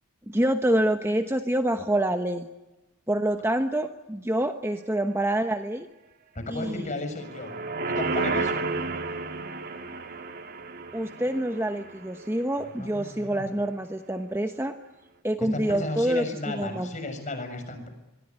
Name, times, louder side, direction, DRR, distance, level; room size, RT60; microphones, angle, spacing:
voice 1, 0.3-2.5 3.1-5.9 6.5-6.8 10.9-14.7 15.2-16.9, right 1 dB, 10° right, 6 dB, 1.1 m, -26 dB
voice 2, 6.4-7.5 7.9-8.6 12.8-13.5 15.4-17.9, left 2 dB, 35° left, 8 dB, 6.8 m, -34 dB
sound 1, 7.2-12.6 13.0-13.1, right 3 dB, 45° right, 2.1 m, -32 dB
24.5 x 24.0 x 9.6 m, 1.0 s
head